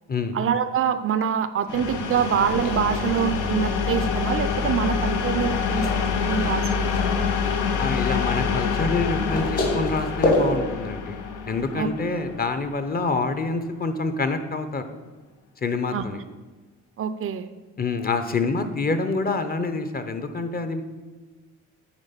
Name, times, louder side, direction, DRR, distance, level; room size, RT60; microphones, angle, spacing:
voice 1, 0.3-7.2 11.8-11.9 15.9-16.0 17.0-17.5, right 8 dB, 45° right, 11 dB, 0.4 m, -25 dB
sound 1, 1.7-13.3, left 6 dB, 85° left, 0.7 m, -26 dB
sound 2, 2.2-10.5, left 2 dB, 50° left, 2.2 m, -31 dB
voice 2, 7.8-11.2 11.5-14.8 15.6-16.2 17.8-20.8, left 3 dB, 30° left, 9 dB, 0.7 m, -26 dB
9.0 x 3.5 x 5.8 m, 1.3 s
cardioid pair, 90°, 30 cm